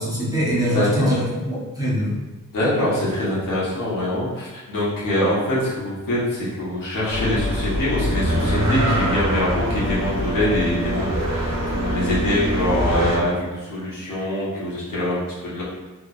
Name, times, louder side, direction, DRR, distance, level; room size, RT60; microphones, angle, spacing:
voice 1, 0.0-2.1, equal, 10° right, -7 dB, 1.0 m, -23 dB
voice 2, 0.6-1.1 2.5-15.6, left 1 dB, 70° left, -8 dB, 1.4 m, -24 dB
sound 1, 7.1-13.2, equal, 50° right, 0.9 m, -23 dB
3.4 x 3.0 x 2.5 m, 1.1 s
cardioid pair, 80°, 34 cm